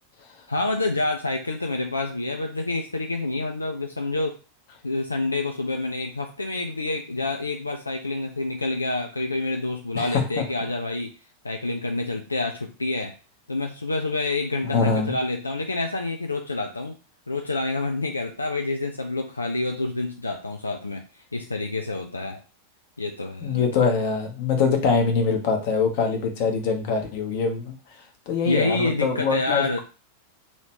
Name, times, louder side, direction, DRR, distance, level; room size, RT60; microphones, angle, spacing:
voice 1, 0.5-4.4 4.8-11.1 11.4-13.1 13.5-17.0 17.3-21.0 21.3-22.4 23.0-23.7 28.5-29.8, left 2 dB, 80° left, 3 dB, 0.4 m, -27 dB
voice 2, 14.7-15.1 23.4-27.7 28.3-29.8, left 5 dB, 50° left, 4 dB, 1.1 m, -23 dB
3.0 x 2.8 x 4.5 m, 0.34 s
figure-of-eight pair, 90°, 0 cm